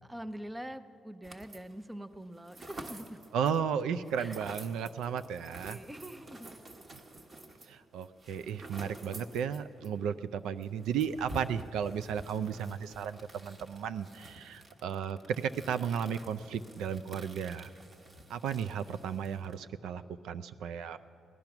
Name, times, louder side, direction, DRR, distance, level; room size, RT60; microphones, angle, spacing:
voice 1, 0.0-3.3 4.2-4.4 5.7-6.8, right 1 dB, 10° right, 12 dB, 0.6 m, -44 dB
sound 1, 1.2-1.8 2.1-10.0 10.2-10.3 10.6-19.6, right 1 dB, 35° right, 1.2 m, -50 dB
voice 2, 3.3-5.8 7.6-17.7 18.3-21.0, right 7 dB, 85° right, 11 dB, 0.4 m, -34 dB
17.5 x 10.5 x 5.9 m, 2.6 s
cardioid pair, 90°, 0 cm